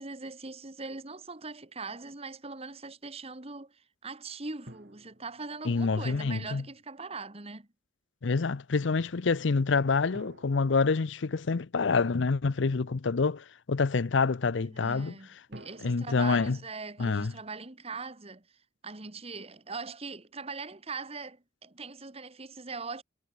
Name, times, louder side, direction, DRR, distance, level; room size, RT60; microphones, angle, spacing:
voice 1, 0.0-7.7 14.6-23.0, right 4 dB, 30° right, 1.8 m, -41 dB
sound 1, 4.7-6.3 10.1-12.0 15.5-17.8, right 1 dB, 60° right, 5.8 m, -54 dB
voice 2, 5.7-6.6 8.2-15.1 15.8-16.6 17.0-17.3, left 4 dB, 75° left, 0.6 m, -27 dB
head